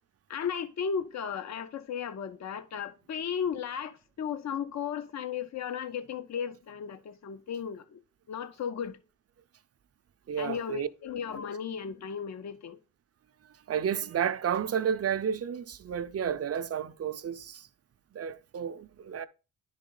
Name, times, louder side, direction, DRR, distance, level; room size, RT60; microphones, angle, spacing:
voice 1, 0.3-8.0 8.3-9.0 10.4-12.8, left 7 dB, 55° left, 0.6 m, -35 dB
voice 2, 10.3-10.9 13.7-17.7 18.1-19.3, right 8 dB, 45° right, 0.5 m, -31 dB
11.0 x 4.0 x 3.8 m
wide cardioid pair, 150°, 33 cm